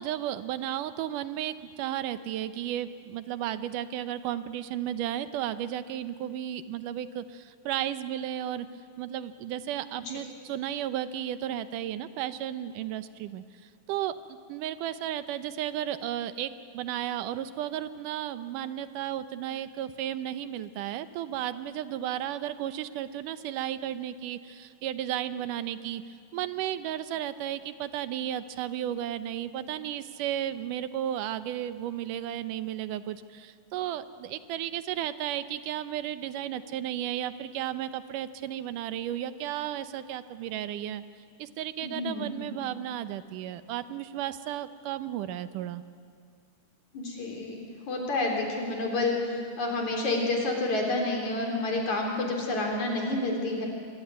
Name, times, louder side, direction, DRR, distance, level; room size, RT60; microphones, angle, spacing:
voice 1, 0.0-8.7 9.0-13.4 13.9-26.0 26.3-41.0 41.4-45.8, right 11 dB, 85° right, 12 dB, 2.4 m, -34 dB
voice 2, 41.8-42.4 46.9-47.6 47.9-53.6, left 2 dB, 65° left, 1 dB, 5.0 m, -29 dB
25.0 x 24.0 x 9.5 m, 2.2 s
omnidirectional pair, 3.7 m